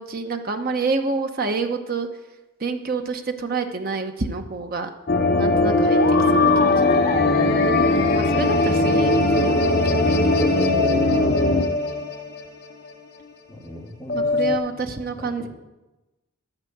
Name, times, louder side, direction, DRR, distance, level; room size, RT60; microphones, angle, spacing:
voice 1, 0.0-2.1 2.6-4.9 5.4-6.9 8.1-9.9 14.1-15.5, right 4 dB, 45° right, 6 dB, 0.9 m, -28 dB
sound 1, 5.1-12.6 12.9-13.0 14.1-14.6, left 2 dB, 45° left, 0.9 m, -19 dB
voice 2, 7.3-8.0 10.7-11.5 13.5-15.5, equal, 5° right, -11 dB, 3.2 m, -38 dB
13.0 x 5.1 x 7.9 m, 1.1 s
head